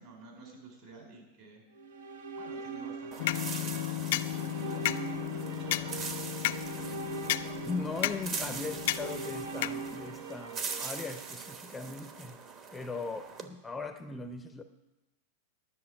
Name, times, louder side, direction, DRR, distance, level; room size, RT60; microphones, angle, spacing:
voice 1, 0.0-1.6 2.4-4.9 5.2-6.2, right 3 dB, 50° right, 1 dB, 4.3 m, -50 dB
sound 1, 1.7-11.9, right 4 dB, 85° right, 1.0 m, -42 dB
Dry Grass Rustle, 3.1-13.5, right 5 dB, 35° right, 1.1 m, -42 dB
sound 2, 3.2-10.2, left 15 dB, 65° left, 0.4 m, -34 dB
voice 2, 7.7-12.4 12.7-14.6, left 4 dB, 10° left, 8 dB, 0.5 m, -39 dB
10.5 x 6.4 x 8.7 m, 1.0 s
supercardioid pair, 135°, 0 cm